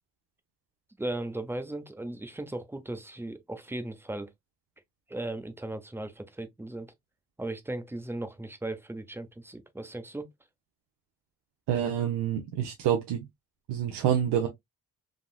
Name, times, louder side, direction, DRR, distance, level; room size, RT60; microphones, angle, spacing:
voice 1, 1.0-4.3 5.1-6.9 7.4-10.3, right 2 dB, 5° right, 0.7 m, -37 dB
voice 2, 11.7-13.2 13.7-14.5, right 9 dB, 85° right, 0.8 m, -27 dB
3.7 x 2.4 x 2.3 m
cardioid pair, 75°, 41 cm